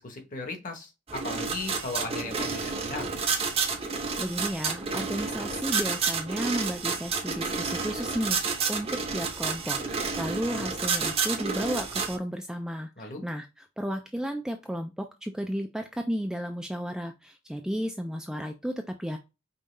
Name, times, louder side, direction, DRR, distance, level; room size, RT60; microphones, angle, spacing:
voice 1, 0.0-3.3 13.0-13.2, left 3 dB, 40° left, 4 dB, 1.1 m, -37 dB
sound 1, 1.1-12.2, right 5 dB, 30° right, 0.7 m, -30 dB
voice 2, 4.2-13.5 13.8-19.2, equal, 5° right, 4 dB, 0.3 m, -33 dB
5.3 x 2.4 x 3.2 m, 0.25 s
head